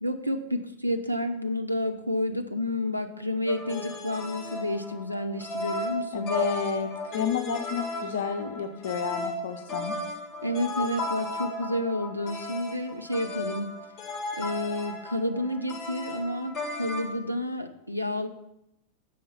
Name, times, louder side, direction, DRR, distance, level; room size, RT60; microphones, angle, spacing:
voice 1, 0.0-6.3 10.4-13.7 14.4-18.3, left 1 dB, 90° right, 6 dB, 0.5 m, -30 dB
sound 1, 3.5-17.1, left 2 dB, 25° left, 1.6 m, -35 dB
voice 2, 6.1-9.9, left 6 dB, 60° left, 7 dB, 0.6 m, -30 dB
6.5 x 5.4 x 5.5 m, 0.82 s
figure-of-eight pair, 90°, 0 cm